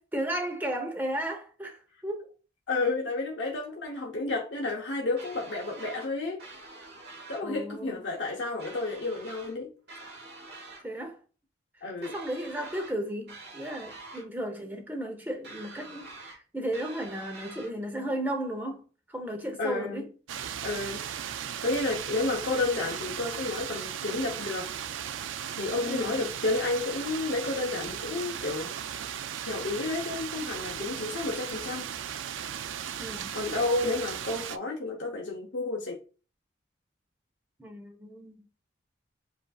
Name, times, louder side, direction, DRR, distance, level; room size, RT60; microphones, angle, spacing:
voice 1, 0.1-2.3 7.4-8.0 10.8-11.2 12.0-18.8 19.1-20.1 25.8-26.2 33.0-33.3 37.6-38.4, right 1 dB, 10° right, 0.8 m, -34 dB
voice 2, 2.7-6.4 7.3-9.7 11.8-12.1 19.6-20.1 20.6-21.0 21.6-24.7 25.6-28.7 29.4-31.9 33.3-36.0, left 3 dB, 75° left, 0.8 m, -31 dB
sound 1, 5.2-6.1 6.4-7.4 8.6-9.6 9.9-10.8 12.0-13.0 13.3-14.3 15.4-16.4 16.7-17.7, right 3 dB, 60° right, 1.2 m, -46 dB
sound 2, 20.3-34.6, right 9 dB, 90° right, 0.4 m, -36 dB
7.8 x 2.6 x 2.4 m
head